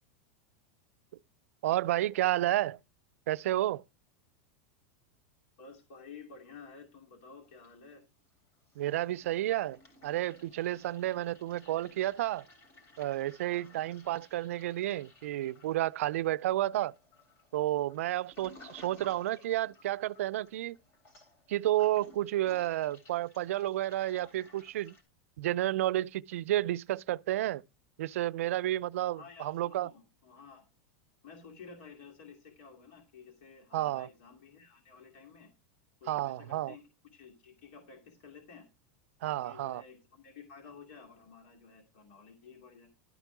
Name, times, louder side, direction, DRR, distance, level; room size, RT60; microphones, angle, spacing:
voice 1, 1.6-2.8 3.3-3.8 8.8-12.5 13.0-16.9 17.5-20.8 21.5-25.0 25.4-27.6 28.0-29.9 33.7-34.1 36.1-36.7 39.2-39.8, right 14 dB, 85° right, 0.4 m, -31 dB
voice 2, 5.6-8.0 13.5-13.9 29.1-30.6 31.2-35.5 36.0-36.8 37.1-38.7 39.2-42.9, left 5 dB, 65° left, 2.4 m, -52 dB
Toilet flush, 7.4-8.3 8.5-25.0, left 1 dB, 35° left, 3.2 m, -59 dB
12.0 x 4.5 x 5.9 m
supercardioid pair, 145°, 7 cm